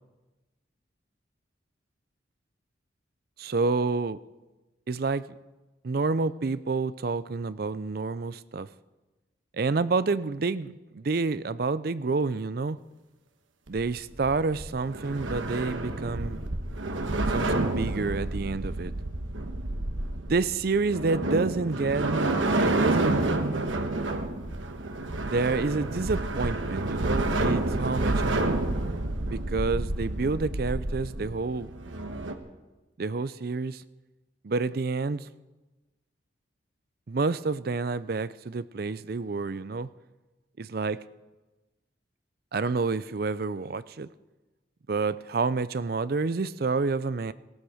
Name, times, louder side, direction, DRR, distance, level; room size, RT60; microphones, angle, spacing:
voice 1, 3.4-4.2 4.9-5.3 5.8-8.7 9.5-12.8 13.7-16.4 17.3-18.9 20.2-23.2 25.2-28.7 29.3-31.7 33.0-33.8 34.4-35.3 37.1-39.9 40.6-41.0 42.5-44.1 44.9-47.3, right 4 dB, 50° right, 16 dB, 0.5 m, -29 dB
sound 1, 13.7-32.3, right 2 dB, 85° right, 1.3 m, -29 dB
18.5 x 15.5 x 5.0 m, 1.1 s
head